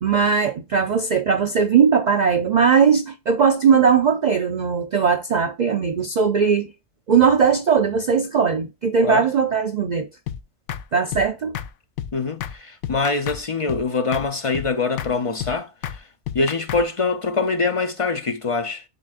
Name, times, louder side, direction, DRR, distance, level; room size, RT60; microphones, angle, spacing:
voice 1, 0.0-6.7 7.1-10.1 10.9-11.6, right 6 dB, 75° right, 0.4 m, -19 dB
sound 1, 10.3-10.4 10.7-10.8 11.1-11.3 11.5-11.7 12.0-12.1 12.4-12.6 12.8-13.4 13.7-13.8 14.1-14.3 14.5-14.7 15.0-15.1 15.4-15.5 15.8-16.0 16.3-16.8, left 10 dB, 75° left, 0.9 m, -30 dB
voice 2, 12.1-16.1 16.3-18.8, left 4 dB, 45° left, 0.4 m, -24 dB
11.0 x 4.0 x 2.4 m
omnidirectional pair, 1.3 m